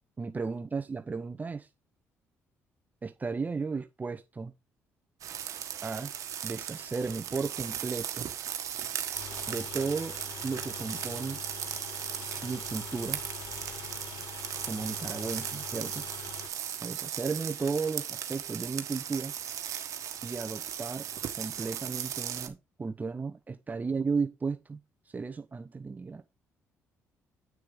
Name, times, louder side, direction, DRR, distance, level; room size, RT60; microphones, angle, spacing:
voice 1, 0.2-1.7 3.0-4.5 5.8-6.1 6.4-8.3 9.5-11.4 12.4-13.2 14.7-16.0 16.8-19.3 20.2-21.0 21.3-24.8 25.1-26.2, right 4 dB, 30° right, 0.9 m, -34 dB
sound 1, 5.2-22.5, right 10 dB, 65° right, 1.4 m, -37 dB
sound 2, 9.1-16.5, left 7 dB, 75° left, 1.8 m, -44 dB
8.6 x 6.4 x 3.7 m
supercardioid pair, 70°, 6 cm